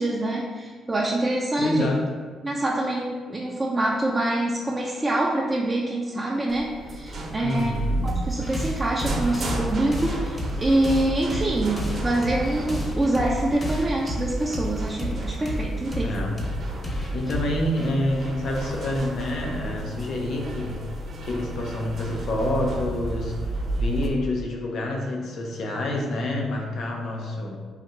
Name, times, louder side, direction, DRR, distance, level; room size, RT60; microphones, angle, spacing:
voice 1, 0.0-1.9 2.4-7.7 8.0-16.3, right 1 dB, 20° right, -3 dB, 0.5 m, -25 dB
voice 2, 1.6-2.0 7.4-8.1 16.0-16.4 17.1-20.8 21.2-27.6, left 1 dB, 65° left, 0 dB, 0.8 m, -28 dB
sound 1, 6.5-24.1, right 2 dB, 50° right, 0.9 m, -33 dB
sound 2, 8.1-19.2, equal, 20° left, 1.0 m, -31 dB
4.1 x 2.8 x 4.4 m, 1.5 s
cardioid pair, 90°, 0 cm